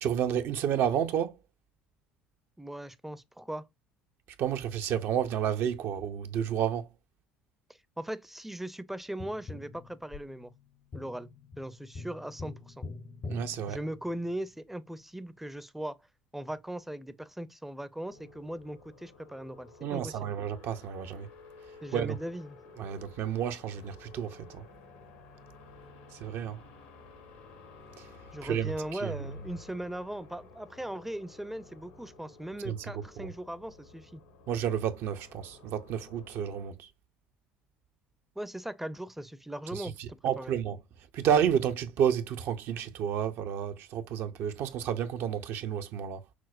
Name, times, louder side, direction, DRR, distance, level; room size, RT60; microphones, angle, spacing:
voice 1, 0.0-1.4 4.4-6.9 13.3-13.8 19.8-21.3 21.9-22.2 22.8-24.7 26.1-26.6 28.0-28.1 28.4-29.1 32.6-33.3 34.5-36.9 39.7-40.8 41.1-46.2, right 9 dB, 60° right, 0.5 m, -31 dB
voice 2, 2.6-3.7 8.0-10.5 10.9-12.9 13.7-16.0 16.3-20.3 21.8-22.6 28.3-34.2 38.4-40.6, right 1 dB, 5° right, 0.5 m, -39 dB
Tap, 9.2-14.5 17.1-17.2, left 3 dB, 35° left, 0.6 m, -44 dB
sound 1, 18.0-36.7, left 4 dB, 80° left, 1.2 m, -53 dB
5.9 x 2.0 x 2.4 m
hypercardioid pair, 65°, 5 cm